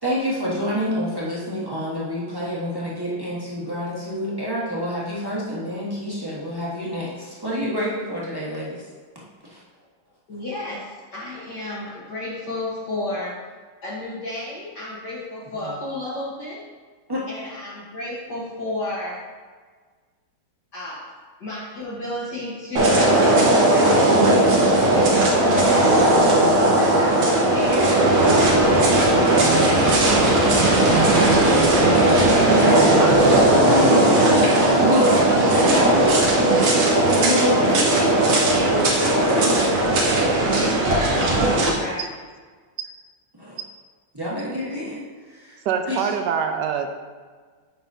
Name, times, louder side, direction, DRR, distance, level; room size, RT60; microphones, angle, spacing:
voice 1, 0.0-8.8 9.4-9.6 17.1-17.2 32.5-35.9 37.1-38.3 43.3-43.6 44.1-45.0 45.4-45.6 45.9-46.1, equal, 15° right, -7 dB, 1.2 m, -27 dB
voice 2, 10.3-13.4 13.8-16.6 17.3-19.2 20.7-21.1 21.4-23.3 26.7-28.7 29.5-31.4 38.5-42.0, left 1 dB, 55° left, -8 dB, 1.8 m, -32 dB
sound 1, 22.8-41.7, right 1 dB, 90° right, 2.2 m, -17 dB
Bark, 30.5-31.9 32.5-33.1, equal, 40° left, 1.9 m, -38 dB
voice 3, 45.6-46.9, right 7 dB, 75° right, 6 dB, 1.0 m, -25 dB
9.0 x 5.6 x 2.7 m, 1.5 s
omnidirectional pair, 2.3 m